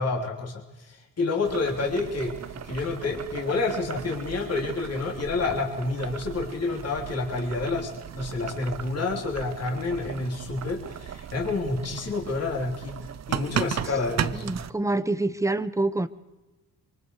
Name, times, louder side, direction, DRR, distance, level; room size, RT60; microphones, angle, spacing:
voice 1, 0.0-2.4 2.6-12.9 13.3-14.4, left 3 dB, 40° left, -1 dB, 3.5 m, -29 dB
Boiling, 1.4-14.7, right 9 dB, 45° right, 0.7 m, -36 dB
voice 2, 14.3-16.1, right 2 dB, 10° right, 14 dB, 0.9 m, -26 dB
26.0 x 24.0 x 4.8 m, 1.1 s
cardioid pair, 105°, 37 cm